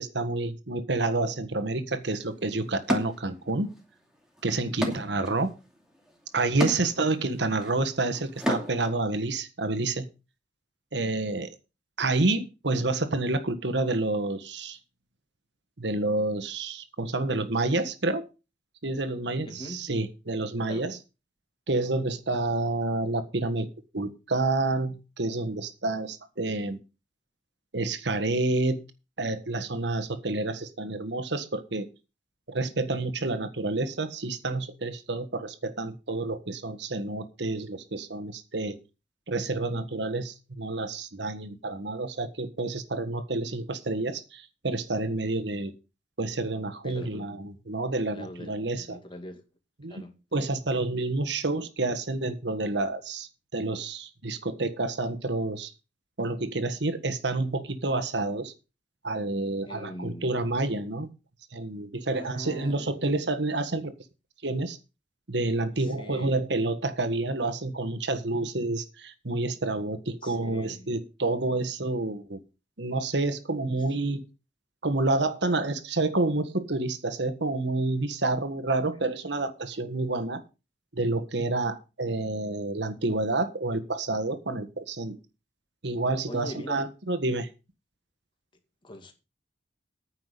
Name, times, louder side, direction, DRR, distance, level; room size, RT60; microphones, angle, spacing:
voice 1, 0.0-3.7 4.4-5.5 6.3-10.1 10.9-11.5 12.0-14.8 15.8-18.3 18.8-21.0 21.7-23.7 23.9-26.8 27.7-28.8 29.2-31.9 32.5-38.8 39.3-45.7 46.2-49.0 49.8-50.1 50.3-55.7 56.2-58.5 59.0-61.1 61.5-63.9 64.4-64.8 65.3-72.4 72.8-74.2 74.8-80.4 80.9-85.2 85.8-87.5, right 2 dB, 70° right, 1.5 m, -29 dB
sound 1, 2.1-2.2 2.9-3.8 4.1-9.0, equal, 5° right, 2.5 m, -33 dB
voice 2, 4.7-5.0 19.5-19.8 20.7-20.9 46.8-47.3 48.1-49.4 49.9-50.1 59.7-60.3 62.1-62.9 65.8-66.4 70.2-70.9 86.3-86.9 88.8-89.1, left 1 dB, 30° left, 2.2 m, -42 dB
9.6 x 5.9 x 8.3 m
head